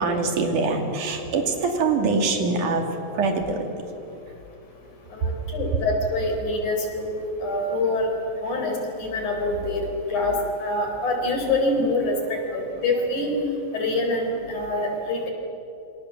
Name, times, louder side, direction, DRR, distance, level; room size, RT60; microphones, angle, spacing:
voice 1, 0.0-3.7 4.0-4.4 4.8-5.7 10.2-10.3 12.5-12.7, right 3 dB, 80° right, 4 dB, 4.0 m, -25 dB
voice 2, 5.1-8.1 8.4-13.4 13.7-15.3, left 2 dB, 75° left, 3 dB, 5.7 m, -25 dB
27.0 x 26.5 x 7.3 m, 2.9 s
omnidirectional pair, 3.5 m